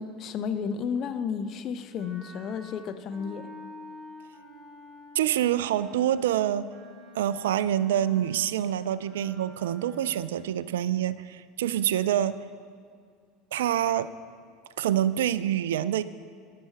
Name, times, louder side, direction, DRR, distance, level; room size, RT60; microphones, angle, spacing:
voice 1, 0.0-3.5, left 6 dB, 45° left, 10 dB, 0.7 m, -32 dB
Wind instrument woodwind instrument, 2.0-10.6, left 1 dB, 15° right, 3.3 m, -48 dB
voice 2, 5.2-6.7 7.1-12.4 13.5-14.1 14.8-16.0, right 11 dB, 70° right, 16 dB, 0.3 m, -26 dB
10.5 x 9.6 x 4.5 m, 2.1 s
figure-of-eight pair, 75°, 0 cm